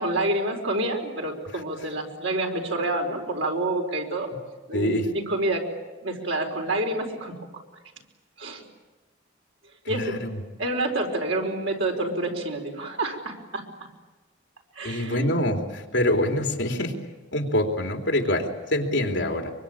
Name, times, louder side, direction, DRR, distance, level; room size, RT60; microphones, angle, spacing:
voice 1, 0.0-4.3 4.7-5.6 6.0-7.4 8.4-8.6 9.9-10.1 10.6-13.6 14.7-15.3, right 2 dB, 80° right, 2 dB, 4.7 m, -28 dB
voice 2, 4.7-5.1 9.9-10.4 14.8-16.9 17.3-18.4 18.7-19.5, left 1 dB, 65° left, 3 dB, 3.5 m, -25 dB
24.5 x 24.5 x 8.9 m, 1.2 s
head